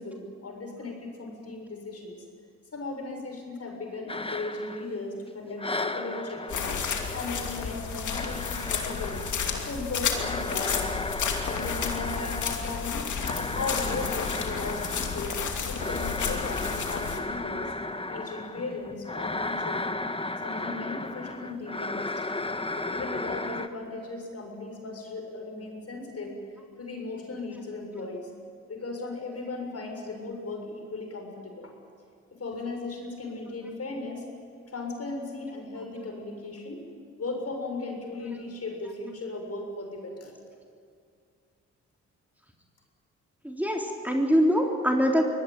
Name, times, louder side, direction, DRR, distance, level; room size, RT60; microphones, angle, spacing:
voice 1, 0.0-2.2 2.7-6.7 7.1-9.3 9.6-11.0 11.5-15.3 15.7-17.7 18.1-20.0 20.4-22.1 22.8-26.3 26.8-28.3 28.7-31.7 32.3-34.3 34.7-36.8 37.2-40.3, left 3 dB, 50° left, 2 dB, 6.9 m, -37 dB
sound 1, 4.1-5.3 5.6-23.7, left 2 dB, 15° left, 1.4 m, -35 dB
sound 2, 6.5-17.2, left 6 dB, 65° left, 2.7 m, -32 dB
voice 2, 43.4-45.2, equal, 5° right, 0 dB, 3.7 m, -23 dB
23.5 x 18.5 x 9.1 m, 2.3 s
supercardioid pair, 50°, 31 cm